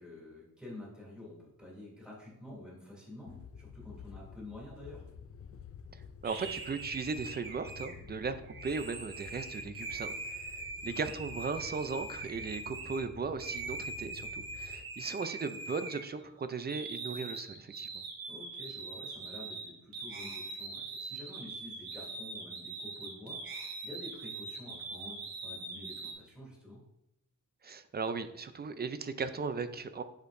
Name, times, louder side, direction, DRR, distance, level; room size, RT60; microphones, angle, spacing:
voice 1, 0.0-5.0 10.8-11.1 18.3-26.8, left 1 dB, 5° right, -5 dB, 2.8 m, -49 dB
sound 1, 3.3-14.8, left 7 dB, 45° left, 0.4 m, -51 dB
voice 2, 5.9-18.0 27.6-30.0, right 4 dB, 30° right, 11 dB, 0.4 m, -37 dB
sound 2, 6.2-13.0 13.4-16.3 16.6-26.1, right 3 dB, 80° right, 1.6 m, -42 dB
8.0 x 6.4 x 2.6 m, 0.83 s
wide cardioid pair, 150°, 35 cm